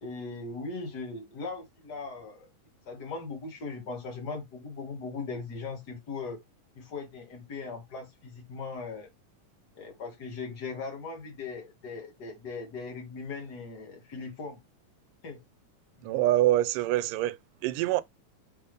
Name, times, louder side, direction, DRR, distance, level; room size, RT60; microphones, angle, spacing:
voice 1, 0.0-2.5 2.9-6.4 6.7-9.1 9.7-14.6 15.2-15.4 16.0-16.2, left 4 dB, 35° left, 2.2 m, -39 dB
voice 2, 16.0-17.4 17.6-18.0, right 15 dB, 85° right, 2.2 m, -25 dB
6.2 x 4.4 x 3.4 m
omnidirectional pair, 3.7 m